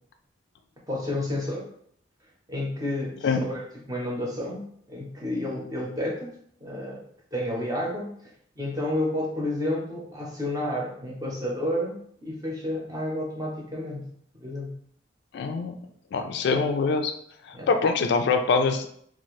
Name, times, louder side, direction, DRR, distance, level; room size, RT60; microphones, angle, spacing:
voice 1, 0.9-1.7 2.5-6.3 6.6-7.0 7.3-8.3 8.6-14.1 14.3-14.7 17.5-17.7, left 1 dB, 20° right, -2 dB, 0.7 m, -31 dB
voice 2, 15.3-15.7 16.1-17.1 17.5-18.9, left 4 dB, 65° left, 6 dB, 0.3 m, -24 dB
2.7 x 2.5 x 3.1 m, 0.66 s
head